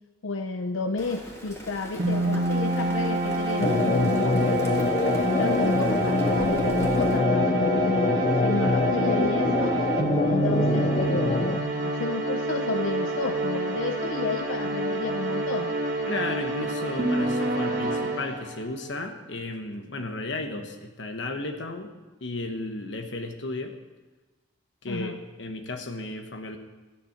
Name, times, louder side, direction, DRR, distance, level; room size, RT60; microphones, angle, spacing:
voice 1, 0.2-4.7 5.4-8.0 8.4-9.8 10.2-15.7 24.9-25.2, left 3 dB, 90° left, 6 dB, 0.7 m, -31 dB
Rain, 1.0-7.2, equal, 15° left, 2.6 m, -41 dB
sound 1, 2.0-18.7, right 2 dB, 50° right, 1.7 m, -27 dB
sound 2, 3.6-11.6, left 3 dB, 30° left, 0.4 m, -25 dB
voice 2, 16.1-21.9 22.2-23.7 24.8-26.6, left 2 dB, 70° left, 5 dB, 1.1 m, -34 dB
13.5 x 10.0 x 5.9 m, 1.2 s
head